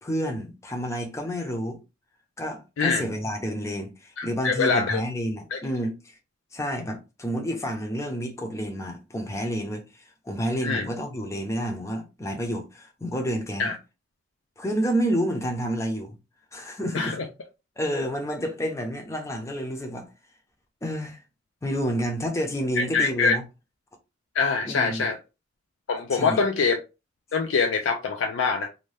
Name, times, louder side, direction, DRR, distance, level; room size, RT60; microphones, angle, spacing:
voice 1, 0.0-1.8 2.4-6.2 6.5-13.7 14.6-16.2 16.5-17.2 17.8-20.1 20.8-21.2 21.6-23.4 24.7-25.1 26.1-26.4, equal, 15° left, 0.6 m, -29 dB
voice 2, 4.2-5.0 5.5-5.6 10.6-10.9 13.6-13.8 16.9-17.2 22.8-23.4 24.3-25.2 25.9-26.8 27.3-28.7, left 4 dB, 75° left, 0.4 m, -24 dB
2.6 x 2.1 x 3.2 m
head